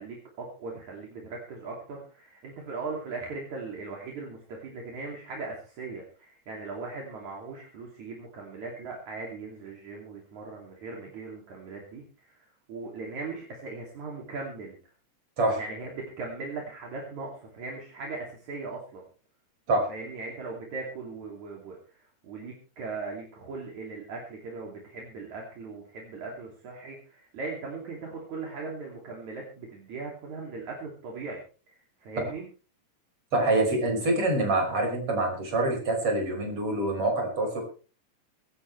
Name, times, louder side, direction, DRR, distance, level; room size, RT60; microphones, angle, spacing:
voice 1, 0.0-14.8 15.6-19.0 19.9-31.4 31.7-32.5, right 3 dB, 65° right, -1 dB, 4.2 m, -39 dB
voice 2, 33.3-37.6, right 2 dB, 45° right, 2 dB, 6.5 m, -25 dB
24.0 x 12.5 x 3.3 m, 0.36 s
omnidirectional pair, 3.6 m